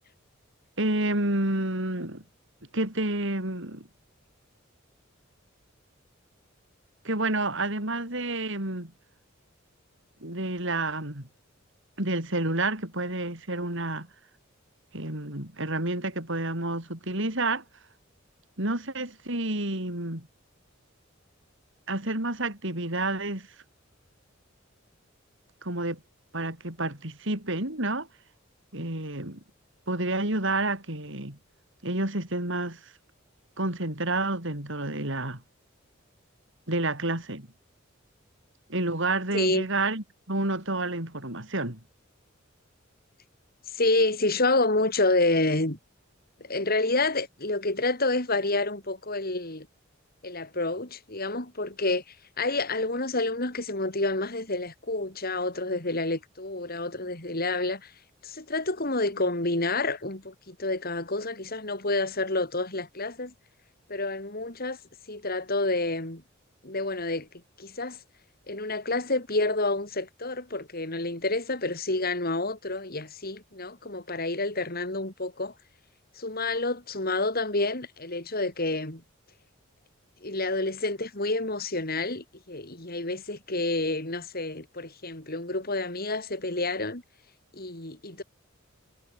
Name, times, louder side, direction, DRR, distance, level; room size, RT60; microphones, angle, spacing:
voice 1, 0.8-2.2 2.7-3.9 7.0-8.9 10.2-11.3 12.0-14.1 14.9-17.6 18.6-20.3 21.9-23.5 25.6-26.0 26.3-28.1 28.7-29.4 29.9-31.4 31.8-32.8 33.6-35.4 36.7-37.5 38.7-41.8, right 2 dB, 65° right, 5.9 m, -29 dB
voice 2, 39.3-39.7 43.7-45.8 46.4-49.7 50.2-52.0 52.4-57.9 58.2-63.3 63.9-64.8 65.1-66.2 66.6-67.3 67.6-68.0 68.5-75.5 76.2-79.0 80.2-87.0 87.5-88.2, left 2 dB, 50° left, 5.5 m, -28 dB
head